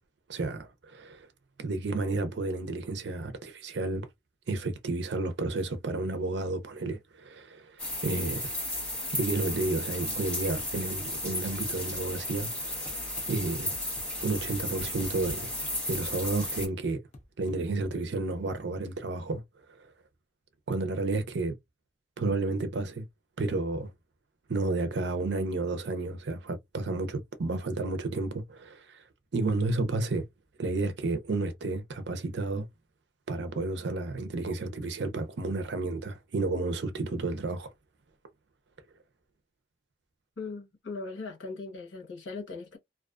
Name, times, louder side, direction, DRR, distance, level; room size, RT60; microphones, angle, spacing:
voice 1, 0.3-1.3 1.6-4.1 4.5-8.5 9.1-13.8 14.2-15.5 15.9-17.0 17.4-19.4 20.7-21.5 22.2-23.0 23.4-23.9 24.5-29.0 29.3-30.3 30.6-32.7 33.3-37.7, right 3 dB, 70° right, 0.5 m, -31 dB
sound 1, 7.8-16.7, left 1 dB, 5° left, 0.9 m, -34 dB
sound 2, 12.9-13.3 13.7-14.1 14.5-15.4 15.9-16.4 17.1-18.0, left 1 dB, 40° left, 0.6 m, -47 dB
voice 2, 40.4-42.8, left 3 dB, 85° left, 1.0 m, -39 dB
2.4 x 2.3 x 2.3 m
head